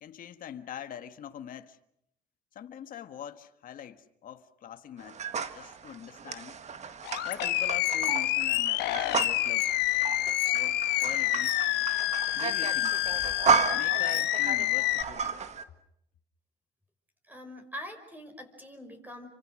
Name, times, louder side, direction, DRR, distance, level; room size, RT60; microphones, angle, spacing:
voice 1, 0.0-1.8 2.5-5.2 5.5-6.6 7.2-9.7 10.5-11.7 12.3-13.0 13.7-15.3, left 9 dB, 55° left, 9 dB, 1.5 m, -43 dB
sound 1, 5.0-15.6, right 5 dB, 40° right, 1.8 m, -33 dB
Animal, 7.0-15.0, left 15 dB, 85° left, 1.1 m, -28 dB
voice 2, 17.3-19.3, equal, 10° right, 6 dB, 5.6 m, -43 dB
30.0 x 25.0 x 6.4 m, 0.75 s
cardioid pair, 110°, 17 cm